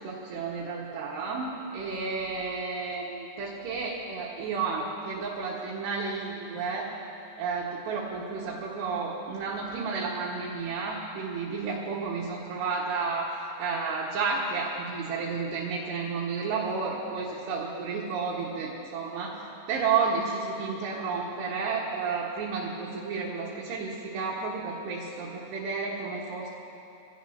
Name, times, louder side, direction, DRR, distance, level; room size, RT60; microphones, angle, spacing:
voice 1, 0.0-6.9 7.4-13.3 13.6-26.5, right 4 dB, 75° right, -5 dB, 3.6 m, -31 dB
24.5 x 17.5 x 2.8 m, 2.8 s
omnidirectional pair, 5.1 m